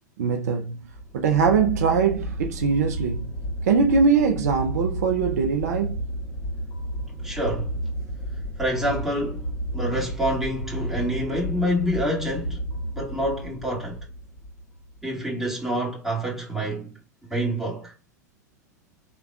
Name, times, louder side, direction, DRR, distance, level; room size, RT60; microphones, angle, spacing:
voice 1, 0.2-0.8 1.1-3.3 3.6-6.0, right 5 dB, 60° right, 0.5 m, -22 dB
sound 1, 0.8-15.0, equal, 20° left, 1.7 m, -32 dB
voice 2, 7.2-7.7 8.6-9.4 9.7-12.6 12.9-14.0 15.0-17.0 17.3-17.9, equal, 5° right, 2.0 m, -27 dB
4.7 x 3.4 x 2.2 m
figure-of-eight pair, 90°, 10 cm